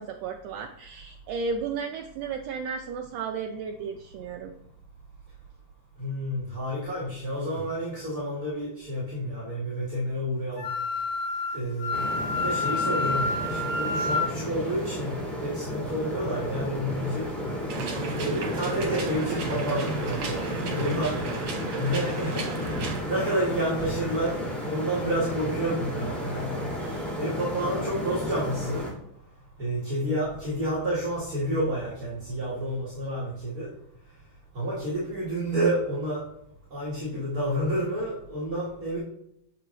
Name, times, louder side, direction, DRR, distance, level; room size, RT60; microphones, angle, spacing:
voice 1, 0.0-4.5 26.8-27.2, right 5 dB, 90° right, 3 dB, 1.4 m, -34 dB
voice 2, 6.0-10.7 11.5-17.2 18.1-21.2 21.7-22.4 23.0-26.6 27.1-28.9 29.6-33.7 34.5-36.2 36.7-39.0, right 1 dB, 40° right, -8 dB, 1.5 m, -30 dB
Wind instrument woodwind instrument, 10.5-14.3, left 3 dB, 40° left, 1.1 m, -28 dB
sound 1, 11.9-28.9, equal, ahead, 1.7 m, -33 dB
sound 2, 17.7-23.0, right 3 dB, 70° right, 2.2 m, -35 dB
6.9 x 5.2 x 3.1 m, 0.74 s
omnidirectional pair, 3.4 m